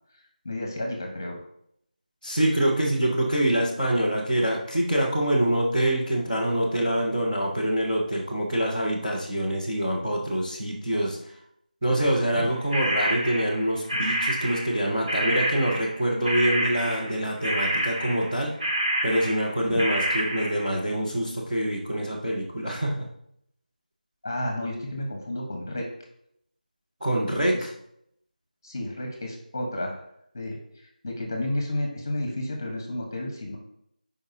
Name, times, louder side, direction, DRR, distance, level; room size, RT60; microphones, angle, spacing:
voice 1, 0.4-1.4 12.3-12.5 19.7-19.8 24.2-25.8 28.6-30.0 30.3-30.6 31.0-33.6, left 1 dB, 20° left, 1 dB, 1.1 m, -31 dB
voice 2, 2.2-11.2 11.8-18.5 19.0-23.1 27.0-27.7, right 1 dB, 10° right, -10 dB, 0.5 m, -25 dB
sound 1, 12.7-14.8 15.1-20.7, right 1 dB, 35° right, 1.0 m, -28 dB
10.0 x 5.0 x 2.7 m, 0.72 s
figure-of-eight pair, 175°, 5 cm